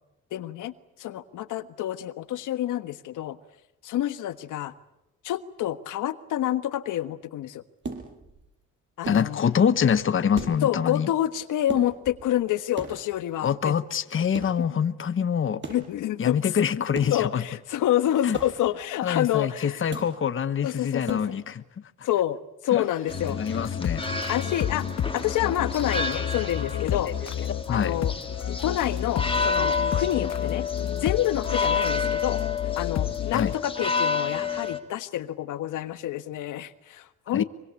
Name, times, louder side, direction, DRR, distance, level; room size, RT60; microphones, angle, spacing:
voice 1, 0.3-0.7 1.0-3.4 3.8-4.7 5.2-7.6 9.0-9.4 10.6-13.7 15.7-16.5 17.1-19.9 20.6-21.4 22.0-23.6 24.3-24.9 25.1-27.1 27.7-28.1 28.6-30.6 31.0-32.4 32.8-37.4, left 12 dB, 85° left, 1.5 m, -28 dB
sound 1, 7.8-8.5 9.0-9.7 9.9-10.0 10.3-11.1 11.7-12.4 12.8-13.3 14.3-14.7 15.6-16.0 16.9-17.4 18.3-18.8 19.9-20.3 21.0-21.5, right 3 dB, 40° right, 6.5 m, -38 dB
voice 2, 9.0-11.1 13.4-15.6 16.2-17.4 18.2-18.4 19.0-21.6 22.7-22.8 23.3-24.0 27.1-27.2 27.7-27.9 33.3-33.5 37.3-37.4, left 7 dB, 45° left, 1.2 m, -25 dB
sound 2, 23.1-33.5, left 9 dB, 60° left, 1.6 m, -31 dB
sound 3, 23.1-34.8, left 4 dB, 20° left, 3.2 m, -30 dB
24.5 x 24.5 x 8.4 m
cardioid pair, 90°, 30 cm